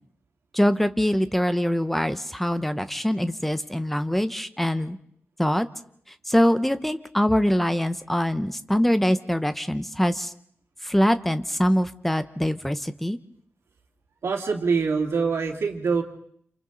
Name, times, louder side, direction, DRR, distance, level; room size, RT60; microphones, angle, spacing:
voice 1, 0.5-5.0 5.4-5.7 6.3-10.3 10.8-13.2, equal, 5° left, 11 dB, 0.9 m, -23 dB
voice 2, 14.2-16.0, right 5 dB, 90° right, 2 dB, 2.6 m, -24 dB
29.5 x 28.0 x 4.0 m, 0.66 s
wide cardioid pair, 160°, 4 cm